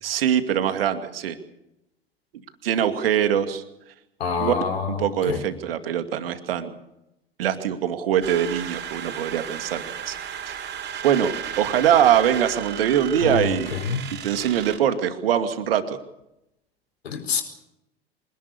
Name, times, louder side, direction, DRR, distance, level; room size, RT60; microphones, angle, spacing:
voice 1, 0.0-1.4 2.6-3.6 4.4-4.5 4.9-6.7 7.4-10.1 10.5-10.7 11.0-13.8 14.2-16.0, right 9 dB, 65° right, 9 dB, 2.5 m, -23 dB
voice 2, 4.2-5.4 13.2-14.0 17.0-17.4, left 6 dB, 75° left, 6 dB, 4.9 m, -27 dB
sound 1, 8.2-14.8, right 9 dB, 35° right, 5.1 m, -34 dB
26.5 x 19.5 x 6.9 m, 0.84 s
figure-of-eight pair, 80°, 31 cm